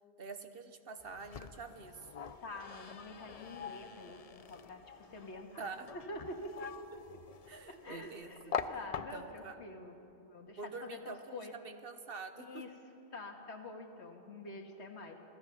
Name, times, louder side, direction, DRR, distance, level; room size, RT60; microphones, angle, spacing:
voice 1, 0.2-2.1 5.6-5.9 7.5-8.5 9.1-9.6 10.6-12.7, right 4 dB, 60° right, 8 dB, 1.2 m, -46 dB
sound 1, 1.0-9.5, left 6 dB, 45° left, 0.6 m, -45 dB
voice 2, 2.4-5.7 5.9-6.8 7.1-7.2 7.8-11.5 12.4-12.7 13.1-15.2, left 2 dB, 80° left, 3 dB, 2.0 m, -47 dB
26.5 x 17.0 x 5.7 m, 2.8 s
omnidirectional pair, 1.1 m